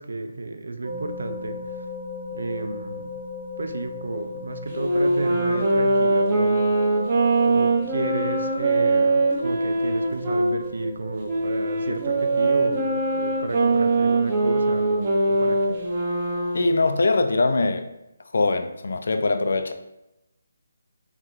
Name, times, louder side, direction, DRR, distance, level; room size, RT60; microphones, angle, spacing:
voice 1, 0.0-1.6 2.3-3.1 3.6-6.7 7.4-15.8, right 3 dB, 75° right, 7 dB, 0.4 m, -31 dB
sound 1, 0.8-16.8, left 4 dB, 55° right, 1.0 m, -39 dB
Wind instrument woodwind instrument, 4.7-10.5 11.3-16.7, right 2 dB, 20° right, 0.5 m, -22 dB
voice 2, 16.5-17.9 18.3-19.7, left 3 dB, 60° left, 8 dB, 0.3 m, -22 dB
3.2 x 2.5 x 4.3 m, 0.92 s
hypercardioid pair, 175°, 0 cm